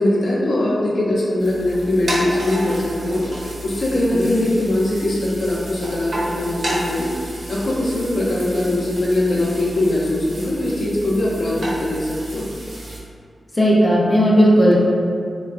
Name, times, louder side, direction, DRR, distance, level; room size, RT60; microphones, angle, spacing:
voice 1, 0.0-7.1 7.5-12.5, left 1 dB, 75° left, -6 dB, 0.6 m, -21 dB
sound 1, 1.4-13.0, right 1 dB, 70° right, 0.8 m, -31 dB
voice 2, 13.5-14.8, equal, 10° left, -5 dB, 0.4 m, -14 dB
3.4 x 2.2 x 2.4 m, 2.3 s
wide cardioid pair, 125°, 0 cm